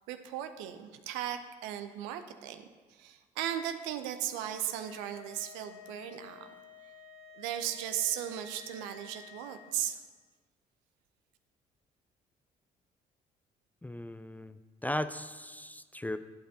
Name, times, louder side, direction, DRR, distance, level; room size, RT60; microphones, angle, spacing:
voice 1, 0.1-2.6 2.9-6.5 7.4-10.0, right 11 dB, 75° right, 9 dB, 0.6 m, -36 dB
sound 1, 4.6-9.7, left 5 dB, 70° left, 1.7 m, -52 dB
voice 2, 13.8-16.2, left 1 dB, 10° left, 12 dB, 0.4 m, -37 dB
11.5 x 8.5 x 2.8 m, 1.4 s
hypercardioid pair, 50°, 20 cm